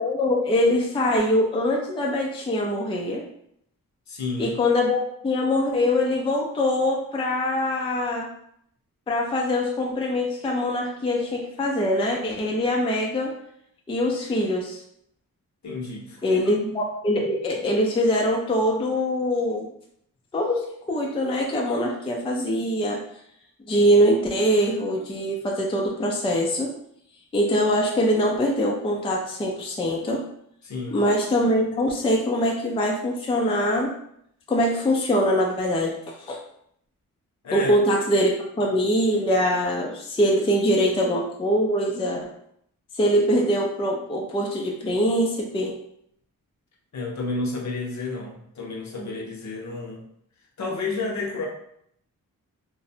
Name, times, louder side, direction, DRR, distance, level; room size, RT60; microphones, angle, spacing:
voice 1, 0.0-3.2 4.4-8.3 9.1-13.3 13.9-14.8 16.2-19.7 20.3-23.0 23.7-26.7 27.3-30.2 30.9-33.9 34.5-36.0 36.3-36.4 37.5-42.3 42.9-45.8, equal, 15° left, -1 dB, 0.3 m, -23 dB
voice 2, 4.1-4.5 15.6-16.5 30.6-31.0 37.4-37.7 46.9-50.0 50.6-51.5, left 3 dB, 55° left, -1 dB, 0.7 m, -31 dB
2.6 x 2.0 x 2.7 m, 0.70 s
cardioid pair, 90°, 34 cm